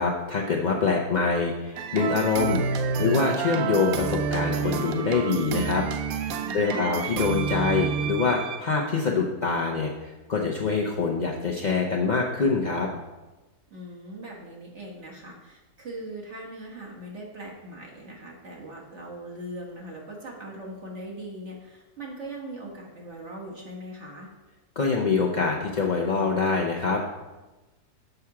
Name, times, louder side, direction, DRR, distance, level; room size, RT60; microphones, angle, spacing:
voice 1, 0.0-2.6 3.0-5.8 6.2-12.9 24.8-27.0, left 4 dB, 75° left, -2 dB, 0.4 m, -25 dB
sound 1, 1.8-8.6, right 6 dB, 75° right, 1.0 m, -29 dB
voice 2, 6.4-7.1 13.7-24.3, right 1 dB, 50° right, -3 dB, 1.5 m, -40 dB
6.7 x 5.8 x 4.7 m, 1.1 s
omnidirectional pair, 1.7 m